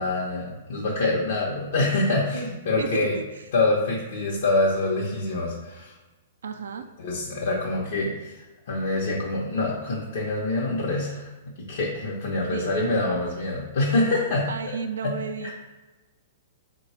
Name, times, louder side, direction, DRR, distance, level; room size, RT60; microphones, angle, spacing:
voice 1, 0.0-3.2 3.5-5.9 7.0-14.5 15.0-15.1 15.4-15.5, left 2 dB, 65° left, -4 dB, 0.7 m, -25 dB
voice 2, 2.8-3.5 6.4-6.9 12.5-12.8 14.5-15.5, right 6 dB, 80° right, 8 dB, 0.3 m, -33 dB
3.9 x 2.2 x 4.2 m, 1.2 s
hypercardioid pair, 130°, 0 cm